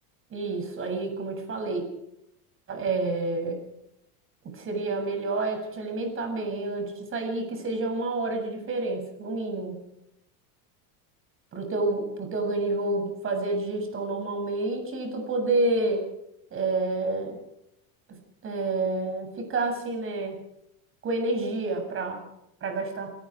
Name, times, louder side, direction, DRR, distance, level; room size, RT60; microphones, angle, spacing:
voice 1, 0.3-1.9 2.7-3.6 4.4-9.8 11.5-16.0 16.5-17.4 18.4-20.4 21.0-22.2 22.6-23.1, right 2 dB, 30° right, 5 dB, 7.8 m, -29 dB
30.0 x 18.0 x 4.9 m, 0.81 s
supercardioid pair, 140°, 42 cm